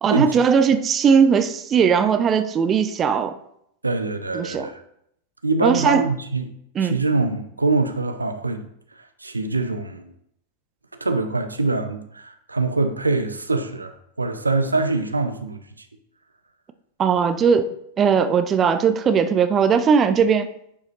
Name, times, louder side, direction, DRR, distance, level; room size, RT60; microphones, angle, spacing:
voice 1, 0.0-3.4 4.3-4.7 5.6-6.1 6.7-7.0 17.0-17.7 18.0-20.5, right 6 dB, 25° right, 0.5 m, -18 dB
voice 2, 3.8-4.8 5.4-6.5 6.8-8.6 9.2-10.1 11.0-15.6, right 3 dB, 80° right, 0.6 m, -24 dB
9.9 x 4.8 x 3.1 m
figure-of-eight pair, 90°, 0 cm